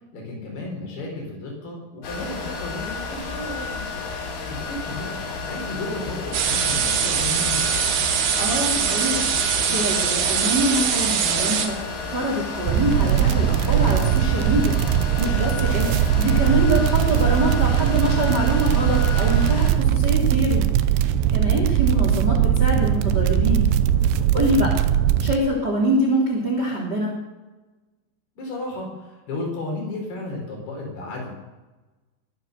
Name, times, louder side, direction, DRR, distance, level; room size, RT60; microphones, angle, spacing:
voice 1, 0.1-3.8 4.5-7.6 16.0-16.3 20.1-20.4 28.4-31.3, left 2 dB, 55° left, 0 dB, 6.3 m, -33 dB
sound 1, 2.0-19.7, left 4 dB, 80° left, 5.6 m, -32 dB
sound 2, 6.3-11.7, right 8 dB, 65° right, 3.2 m, -22 dB
voice 2, 8.4-9.2 9.7-11.8 12.1-14.8 15.2-20.6 21.3-23.7 24.3-24.7 25.2-27.1, equal, 25° right, -1 dB, 3.2 m, -24 dB
sound 3, 12.7-25.4, right 10 dB, 80° right, 2.7 m, -20 dB
22.0 x 9.5 x 6.7 m, 1.1 s
omnidirectional pair, 5.5 m